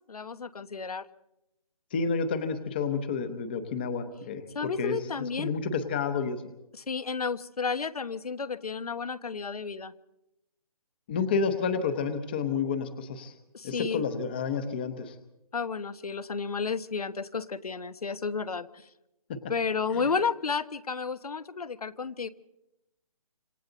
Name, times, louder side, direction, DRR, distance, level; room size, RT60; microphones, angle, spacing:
voice 1, 0.1-1.0 4.5-5.5 6.8-9.9 13.5-14.0 15.5-18.9 19.5-22.3, left 5 dB, 80° left, 14 dB, 1.2 m, -32 dB
voice 2, 1.9-6.4 11.1-13.3 13.6-15.2 19.3-19.4, left 5 dB, 15° left, 10 dB, 0.9 m, -30 dB
27.0 x 25.0 x 4.0 m, 0.88 s
hypercardioid pair, 170°, 19 cm